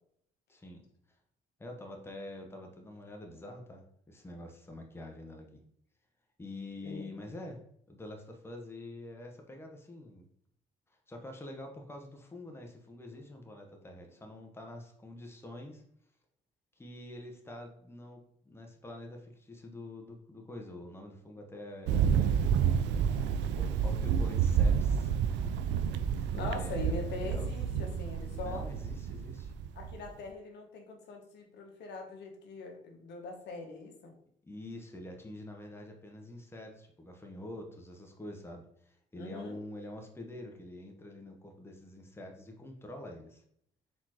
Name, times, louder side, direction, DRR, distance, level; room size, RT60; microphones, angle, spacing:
voice 1, 0.5-0.8 1.6-5.6 6.4-7.6 7.9-10.2 11.1-15.8 16.8-18.2 18.5-22.9 23.3-25.5 26.1-27.5 28.4-29.5 34.4-43.4, left 1 dB, 15° left, 2 dB, 1.0 m, -46 dB
voice 2, 6.8-7.2 26.3-28.7 29.7-34.2 39.2-39.6, left 3 dB, 70° left, 3 dB, 1.0 m, -42 dB
Thunder, 21.9-30.1, right 7 dB, 75° right, 0.4 m, -29 dB
4.3 x 3.7 x 3.0 m, 0.69 s
supercardioid pair, 70°, 18 cm